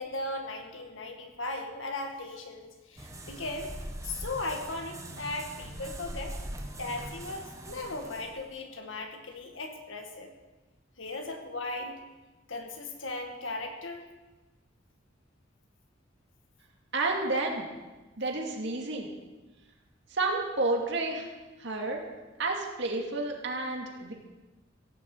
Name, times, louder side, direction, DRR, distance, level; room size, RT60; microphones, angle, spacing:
voice 1, 0.0-6.4 6.8-10.3 11.0-12.0 12.5-14.1, left 2 dB, 75° left, 3 dB, 2.1 m, -37 dB
sound 1, 3.0-8.5, right 1 dB, 15° right, 1.4 m, -42 dB
voice 2, 16.9-17.6 18.2-19.1 20.1-21.3 21.6-22.0 22.4-24.1, right 2 dB, 65° right, 1 dB, 2.4 m, -30 dB
16.5 x 7.2 x 8.0 m, 1.2 s
head